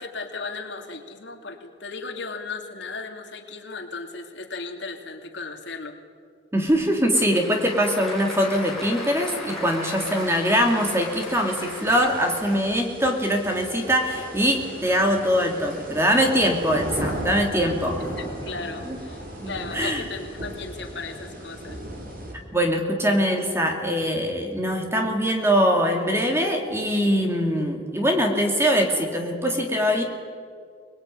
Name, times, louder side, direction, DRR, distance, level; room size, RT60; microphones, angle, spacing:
voice 1, 0.0-6.0 18.2-21.8, left 4 dB, 70° left, 4 dB, 2.8 m, -36 dB
voice 2, 6.5-18.0 18.9-19.0 19.4-20.0 22.5-30.0, equal, 15° right, 2 dB, 3.0 m, -22 dB
Applause / Crowd, 6.7-12.9, left 2 dB, ahead, 7.1 m, -37 dB
sound 1, 9.9-22.3, right 1 dB, 50° right, 4.9 m, -37 dB
25.0 x 20.5 x 9.6 m, 2.1 s
head